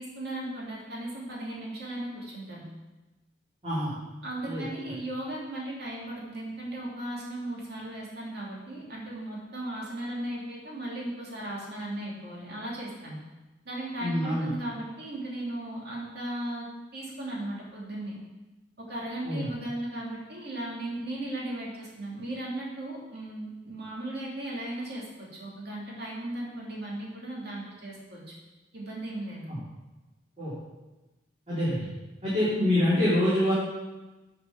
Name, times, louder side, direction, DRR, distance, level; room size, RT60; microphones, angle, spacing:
voice 1, 0.0-2.6 4.2-13.2 13.6-16.7 16.9-18.1 18.8-28.3 28.7-29.5, right 1 dB, 60° right, -4 dB, 2.8 m, -36 dB
voice 2, 14.0-14.5 19.2-19.5 29.5-29.6 30.4-30.5 31.5-31.9 32.2-33.5, left 1 dB, 40° right, -12 dB, 3.4 m, -26 dB
8.5 x 5.3 x 6.0 m, 1.1 s
head